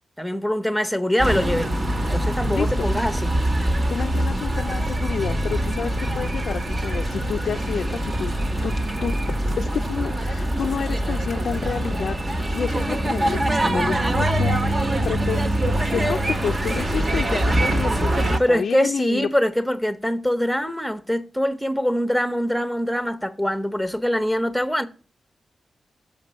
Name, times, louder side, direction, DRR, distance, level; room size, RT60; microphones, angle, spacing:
voice 1, 0.2-1.7 2.0-3.3 18.4-24.9, equal, ahead, 0.9 m, -23 dB
sound 1, 1.2-18.4, right 1 dB, 40° right, 1.2 m, -23 dB
voice 2, 2.5-2.9 3.9-8.3 8.6-8.7 9.0-12.2 12.5-19.3, left 6 dB, 80° left, 0.4 m, -29 dB
7.0 x 5.2 x 5.4 m
cardioid pair, 65°, 0 cm